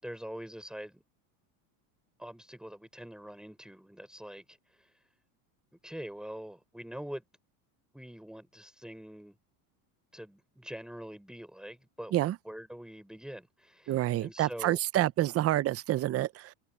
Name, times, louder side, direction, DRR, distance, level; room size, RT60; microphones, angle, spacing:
voice 1, 0.0-1.0 2.2-5.0 5.8-7.2 7.9-9.3 10.1-12.1 12.4-14.8, equal, ahead, 5.8 m, -44 dB
voice 2, 13.9-16.5, right 14 dB, 35° right, 0.7 m, -28 dB
supercardioid pair, 115°, 44 cm